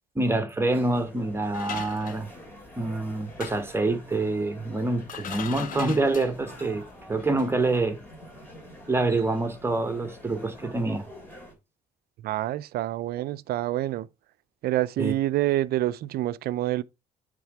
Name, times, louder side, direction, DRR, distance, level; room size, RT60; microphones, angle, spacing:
voice 1, 0.1-2.3 2.8-8.0 8.9-11.1 15.0-15.1, right 2 dB, 15° right, 1.2 m, -26 dB
sound 1, 0.7-11.5, equal, 10° left, 3.6 m, -47 dB
sound 2, 1.5-2.8 3.2-3.8 4.7-4.8 5.0-6.5 7.1-7.5 7.7-7.8, left 8 dB, 55° left, 0.9 m, -39 dB
voice 2, 12.2-14.1 14.6-16.8, right 15 dB, 65° right, 0.5 m, -27 dB
9.3 x 3.6 x 4.8 m
cardioid pair, 110°, 17 cm